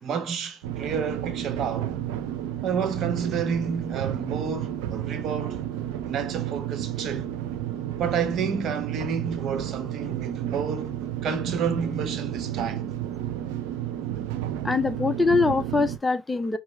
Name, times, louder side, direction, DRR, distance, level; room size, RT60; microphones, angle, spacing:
voice 1, 0.0-2.0 2.6-5.6 6.0-7.3 8.0-10.9 11.2-12.9, right 6 dB, 60° right, 1.3 m, -30 dB
sound 1, 0.6-16.0, right 11 dB, 85° right, 0.7 m, -32 dB
voice 2, 14.6-16.6, left 3 dB, 15° left, 0.7 m, -23 dB
5.3 x 2.9 x 3.3 m
supercardioid pair, 75°, 0 cm